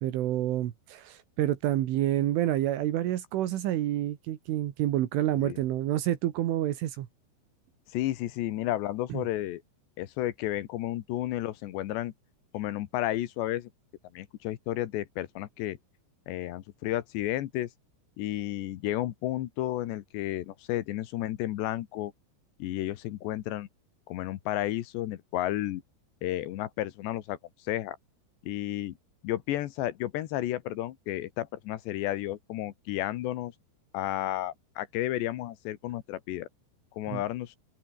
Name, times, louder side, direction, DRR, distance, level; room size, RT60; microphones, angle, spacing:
voice 1, 0.0-7.1 9.1-9.2 37.1-37.2, right 13 dB, 75° right, 4.1 m, -28 dB
voice 2, 7.9-9.6 10.0-12.1 12.5-13.7 14.1-15.8 16.3-17.7 18.2-22.1 22.6-23.7 24.1-25.8 26.2-27.4 27.6-28.0 28.4-28.9 29.2-33.5 33.9-36.5 36.9-37.6, left 14 dB, 70° left, 3.1 m, -32 dB
omnidirectional pair, 5.7 m